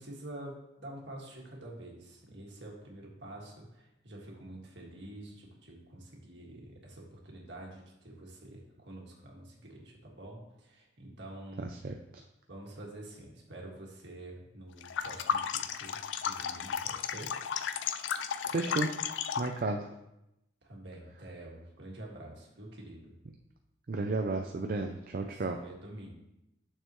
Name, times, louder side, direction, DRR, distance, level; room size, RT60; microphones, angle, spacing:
voice 1, 0.0-11.7 12.5-17.3 20.6-23.1 24.8-24.9 25.2-26.1, right 1 dB, 65° right, -2 dB, 1.9 m, -47 dB
voice 2, 11.6-12.2 18.4-18.9 19.4-19.9 23.9-25.6, right 3 dB, 45° right, 3 dB, 0.4 m, -33 dB
sound 1, 14.8-19.6, left 7 dB, 70° left, 0.4 m, -34 dB
9.1 x 6.6 x 3.1 m, 0.87 s
head